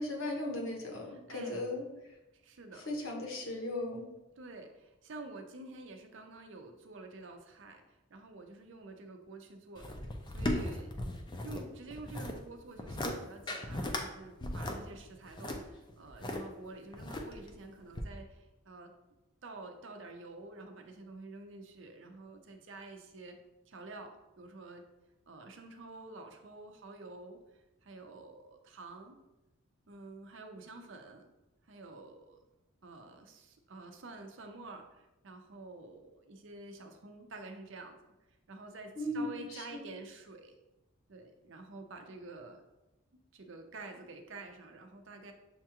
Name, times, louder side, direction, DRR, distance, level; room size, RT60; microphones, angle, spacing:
voice 1, 0.0-1.8 2.9-4.0 39.0-39.9, left 1 dB, 75° left, 1 dB, 1.0 m, -37 dB
voice 2, 1.1-1.6 2.4-2.9 4.4-11.1 11.4-18.9 19.4-23.4 23.7-24.9 25.3-29.2 29.9-31.3 31.6-32.4 32.8-38.0 38.5-40.5 41.1-42.6 43.3-45.3, right 3 dB, 60° right, 5 dB, 0.6 m, -49 dB
sound 1, 9.8-11.6 11.9-12.4 12.8-13.1 13.5-14.0 14.4-16.4 16.9-17.5 17.9-18.0, left 1 dB, 20° left, 0.4 m, -36 dB
7.0 x 2.4 x 2.9 m, 0.99 s
head